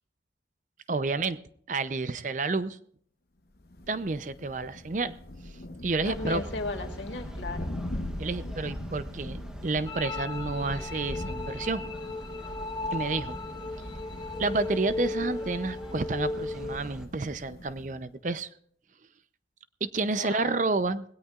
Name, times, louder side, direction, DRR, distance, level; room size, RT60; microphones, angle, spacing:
voice 1, 0.9-1.4 1.7-2.8 3.9-5.1 5.8-6.4 8.2-11.8 12.9-13.4 14.4-18.5 19.8-21.0, right 3 dB, 45° right, 13 dB, 0.6 m, -30 dB
Thunder, 3.5-18.1, left 1 dB, 55° left, 1.0 m, -42 dB
sound 1, 6.0-17.1, equal, 5° right, 1.0 m, -43 dB
voice 2, 6.1-7.7 20.1-20.6, left 3 dB, 90° left, 4 dB, 2.2 m, -36 dB
sound 2, 9.9-16.8, left 2 dB, 25° left, 0.7 m, -36 dB
19.5 x 17.0 x 2.4 m, 0.62 s
head